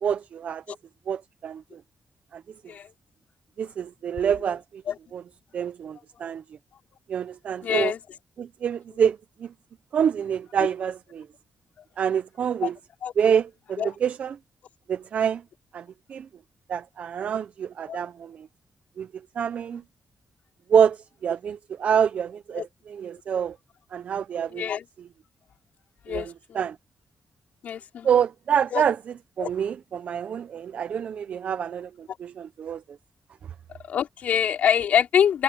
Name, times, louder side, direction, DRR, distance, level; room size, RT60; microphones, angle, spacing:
voice 1, 0.0-0.6 1.1-1.8 2.3-2.4 3.6-4.8 5.1-5.2 5.5-6.4 7.1-7.9 8.4-9.5 9.9-11.3 12.0-12.8 13.2-14.4 14.9-15.4 15.7-16.3 16.7-18.5 19.0-19.8 20.7-23.6 23.9-24.7 26.1-26.8 28.0-29.0 29.4-32.8, right 8 dB, 70° right, 0.7 m, -26 dB
voice 2, 7.6-8.0 12.6-12.7 13.0-13.1 13.8-14.0 17.9-18.0 22.5-22.7 24.5-24.8 26.1-26.6 27.6-28.1 28.7-28.8 29.4-29.5 32.1-32.2 33.8-35.4, left 8 dB, 80° left, 4.6 m, -25 dB
cardioid pair, 70°, 3 cm